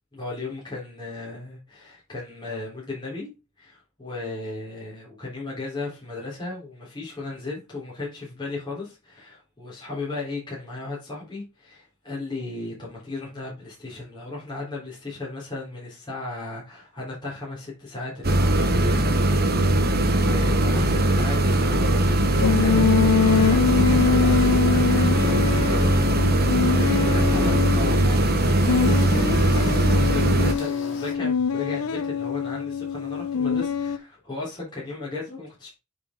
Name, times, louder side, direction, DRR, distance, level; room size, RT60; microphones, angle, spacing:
voice 1, 0.1-19.2 19.8-35.7, left 3 dB, 20° left, 3.5 m, -35 dB
sound 1, 18.2-30.5, right 1 dB, 50° right, 1.1 m, -20 dB
sound 2, 22.4-28.1 28.7-34.0, left 6 dB, 85° left, 0.6 m, -24 dB
sound 3, 23.2-31.1, left 2 dB, 60° left, 3.1 m, -43 dB
8.1 x 5.0 x 3.6 m
head